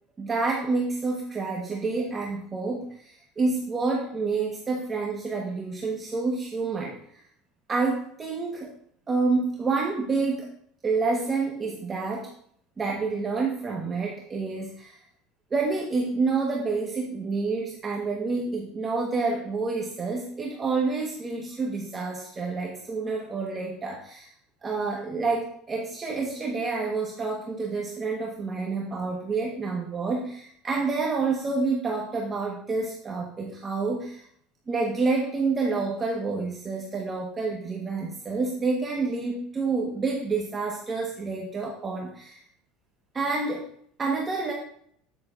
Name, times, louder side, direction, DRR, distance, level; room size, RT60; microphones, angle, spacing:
voice 1, 0.2-7.2 7.7-8.7 9.1-10.5 10.8-12.3 12.8-15.0 15.5-24.3 24.6-34.2 34.7-42.4 43.1-43.6 44.0-44.5, right 4 dB, 20° right, -1 dB, 1.1 m, -28 dB
8.9 x 8.4 x 2.4 m, 0.64 s
cardioid pair, 140°, 0 cm